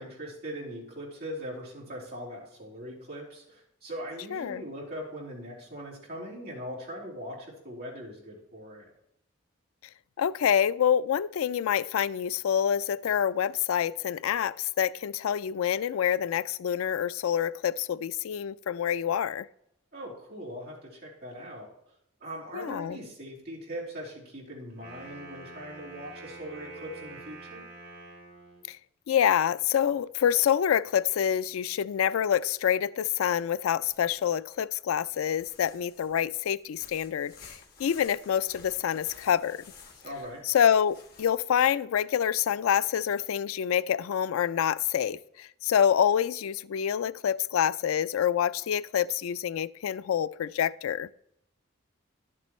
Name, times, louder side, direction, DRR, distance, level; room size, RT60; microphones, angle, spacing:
voice 1, 0.0-8.9 19.9-21.7 22.2-27.6 40.0-40.4, equal, 45° right, 3.6 m, -40 dB
voice 2, 4.3-4.6 10.2-19.5 22.5-23.0 28.7-28.8 29.1-39.6 40.5-51.1, left 9 dB, 85° left, 0.3 m, -27 dB
Wind instrument woodwind instrument, 24.7-28.7, right 2 dB, 75° right, 3.8 m, -46 dB
sound 1, 33.8-34.6 35.1-41.7, left 5 dB, 45° left, 1.4 m, -53 dB
11.5 x 7.6 x 3.1 m
head